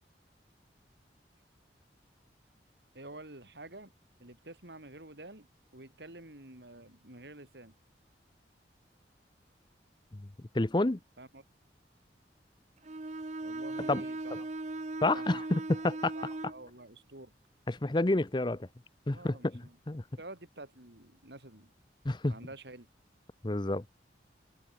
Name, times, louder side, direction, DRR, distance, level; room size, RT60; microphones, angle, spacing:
voice 1, 2.9-3.9 4.2-5.5 5.7-7.7 11.2-11.4 13.4-14.3 15.1-15.2 16.1-17.3 19.1-19.8 20.2-21.7 22.3-22.9, right 2 dB, 70° right, 4.4 m, -49 dB
voice 2, 10.5-11.0 13.9-14.0 14.3-14.4 15.0-16.1 17.7-18.7 19.1-20.0 22.0-22.3 23.4-23.8, left 2 dB, 25° left, 0.7 m, -29 dB
Bowed string instrument, 12.8-16.6, right 2 dB, 40° right, 0.8 m, -38 dB
open air
head